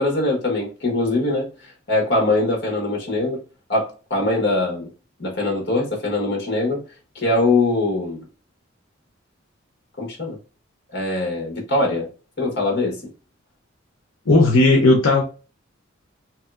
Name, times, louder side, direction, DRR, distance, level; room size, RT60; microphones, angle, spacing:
voice 1, 0.0-1.5 1.9-3.4 3.7-4.9 5.2-6.8 7.1-8.2 10.0-10.4 10.9-12.1 12.4-13.0, left 2 dB, 60° left, 1.2 m, -22 dB
voice 2, 14.3-15.2, left 2 dB, 90° left, 0.7 m, -15 dB
3.0 x 2.7 x 2.3 m
head